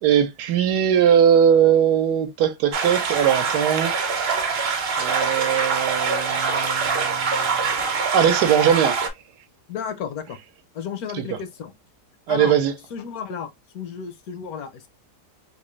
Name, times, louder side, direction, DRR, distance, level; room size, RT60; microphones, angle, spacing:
voice 1, 0.0-4.3 5.0-7.8 8.1-9.0 11.1-11.2 12.3-12.7, right 9 dB, 80° right, 1.2 m, -20 dB
sound 1, 2.7-9.1, right 5 dB, 50° right, 0.7 m, -24 dB
voice 2, 9.7-10.4 10.7-11.7 12.3-12.5 12.9-14.9, left 7 dB, 70° left, 1.1 m, -33 dB
3.7 x 2.5 x 3.0 m
omnidirectional pair, 1.8 m